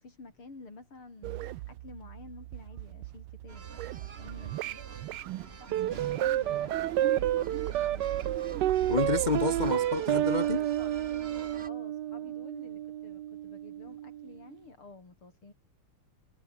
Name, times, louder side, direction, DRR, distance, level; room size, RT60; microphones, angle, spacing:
voice 1, 0.0-4.6 5.3-5.5 5.9-9.1 11.7-15.5, left 3 dB, 80° left, 6.6 m, -51 dB
sound 1, 1.2-9.7, right 17 dB, 80° right, 1.4 m, -39 dB
sound 2, 3.5-11.7, right 5 dB, 35° right, 1.5 m, -47 dB
sound 3, 5.7-14.3, right 12 dB, 65° right, 1.2 m, -30 dB
voice 2, 8.9-10.6, left 4 dB, 65° left, 0.4 m, -29 dB
omnidirectional pair, 2.3 m